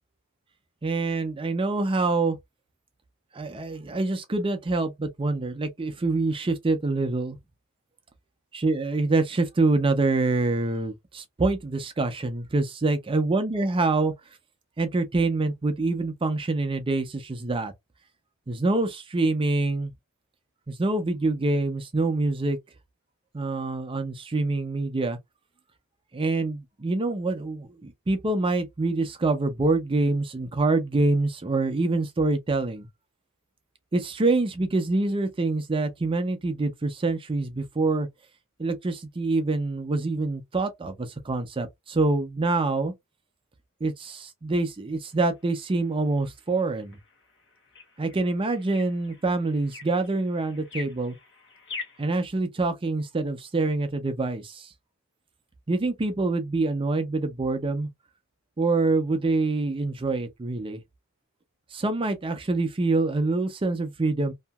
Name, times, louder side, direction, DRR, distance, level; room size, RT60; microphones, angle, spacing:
voice 1, 0.8-2.4 3.3-7.4 8.5-14.1 14.8-17.7 18.5-19.9 20.7-22.6 23.3-25.2 26.1-32.9 33.9-38.1 38.6-42.9 43.8-47.0 48.0-51.2 52.0-54.7 55.7-57.9 58.6-60.8 61.7-64.3, right 3 dB, 25° right, 0.4 m, -26 dB
sound 1, 45.0-52.1, left 4 dB, 60° left, 1.1 m, -45 dB
2.8 x 2.6 x 2.2 m
head